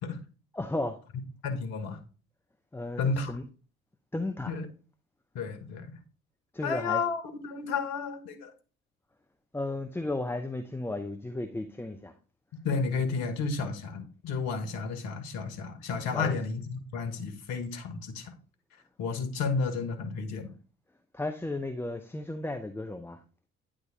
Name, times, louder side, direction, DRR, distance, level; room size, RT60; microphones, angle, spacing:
voice 1, 0.5-1.0 2.7-3.4 4.1-4.5 6.5-7.1 9.5-12.1 16.1-16.7 21.1-23.2, left 2 dB, 5° left, 0.6 m, -34 dB
voice 2, 1.4-2.0 3.0-3.4 4.5-4.7 5.3-5.9 6.6-8.5 12.6-18.3 19.0-20.5, left 4 dB, 65° left, 1.3 m, -32 dB
9.4 x 3.7 x 3.9 m
figure-of-eight pair, 45°, 41 cm